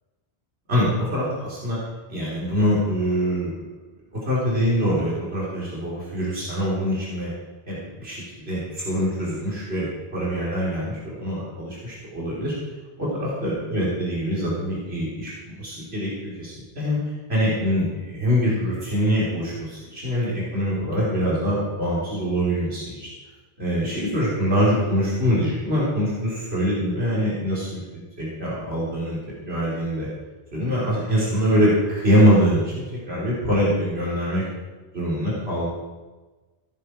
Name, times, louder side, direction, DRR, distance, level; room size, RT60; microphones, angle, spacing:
voice 1, 0.7-1.8 2.1-3.6 4.3-7.3 7.7-12.6 13.0-17.0 17.3-23.1 23.6-27.8 28.2-29.2 29.5-30.1 30.5-34.4 34.9-35.7, equal, 80° right, -7 dB, 3.9 m, -24 dB
15.5 x 10.5 x 4.5 m, 1.2 s
omnidirectional pair, 1.0 m